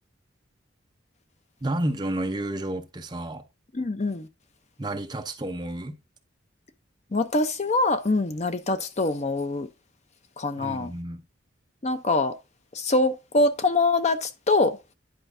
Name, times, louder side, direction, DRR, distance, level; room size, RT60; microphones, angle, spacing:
voice 1, 1.6-3.5 4.8-6.0 10.6-11.2, right 1 dB, 25° right, 0.7 m, -31 dB
voice 2, 3.7-4.3 7.1-9.7 10.4-10.9 11.8-12.3 12.7-14.8, left 2 dB, 35° left, 0.6 m, -24 dB
10.0 x 4.5 x 2.6 m
head